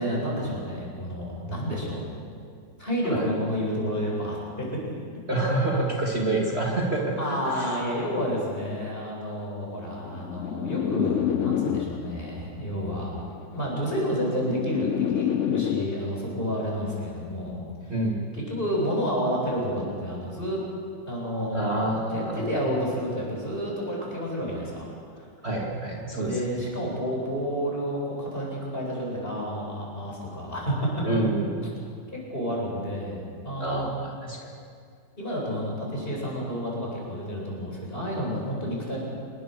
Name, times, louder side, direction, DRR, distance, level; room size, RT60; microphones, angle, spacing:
voice 1, 0.0-2.0 2.8-4.7 7.2-13.1 13.5-18.0 18.3-20.6 21.1-24.9 25.2-25.3 26.1-30.9 32.1-33.9 35.2-39.0, equal, 30° left, -3 dB, 8.0 m, -30 dB
voice 2, 5.3-7.7 17.9-18.3 21.5-22.5 25.4-26.4 31.0-31.8 33.6-34.5, right 2 dB, 35° right, -3 dB, 2.6 m, -27 dB
sound 1, 9.9-12.3 13.3-16.3, left 10 dB, 60° left, 0.8 m, -28 dB
27.5 x 22.0 x 6.8 m, 2.3 s
omnidirectional pair, 2.0 m